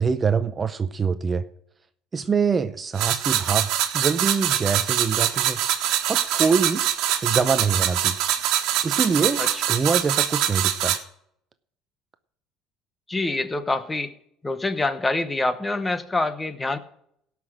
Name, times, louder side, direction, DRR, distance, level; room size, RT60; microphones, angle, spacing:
voice 1, 0.0-1.4 2.1-5.6 6.1-6.8 7.2-8.2 8.8-9.4 9.7-11.0, right 5 dB, 25° right, 12 dB, 0.6 m, -24 dB
sound 1, 3.0-11.0, right 11 dB, 65° right, 1.5 m, -24 dB
voice 2, 13.1-14.1 14.4-16.8, left 2 dB, 15° left, 13 dB, 0.9 m, -26 dB
17.5 x 5.9 x 6.1 m, 0.70 s
cardioid pair, 135°, 0 cm